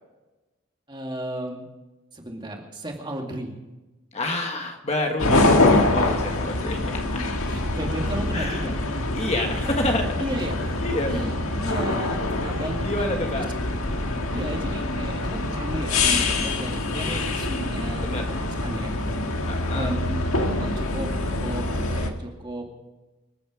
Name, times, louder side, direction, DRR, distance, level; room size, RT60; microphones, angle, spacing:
voice 1, 0.9-1.7 2.1-3.5 6.3-6.4 7.5-8.8 9.6-9.7 10.2-13.4 14.3-19.0 19.6-21.1 21.4-22.7, right 1 dB, 20° right, 1 dB, 2.3 m, -34 dB
voice 2, 4.1-7.4 8.3-8.7 9.2-10.1 10.8-11.2 12.4-13.5 16.9-17.3 18.0-18.3 19.4-19.9, left 1 dB, 30° left, 3 dB, 1.4 m, -29 dB
sound 1, 5.2-22.1, left 2 dB, 75° left, 1.7 m, -25 dB
25.5 x 9.2 x 5.0 m, 1.1 s
head